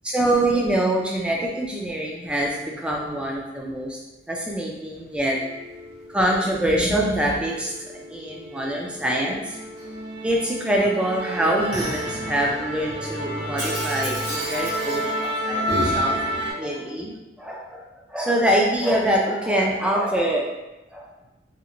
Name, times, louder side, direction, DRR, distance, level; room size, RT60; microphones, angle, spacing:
voice 1, 0.0-4.0 4.3-5.4 6.1-9.6 10.2-20.5 20.9-21.1, right 1 dB, 5° right, -2 dB, 0.3 m, -24 dB
Musical instrument, 5.3-16.5, equal, 65° right, 0.9 m, -30 dB
2.8 x 2.4 x 2.5 m, 1.0 s
head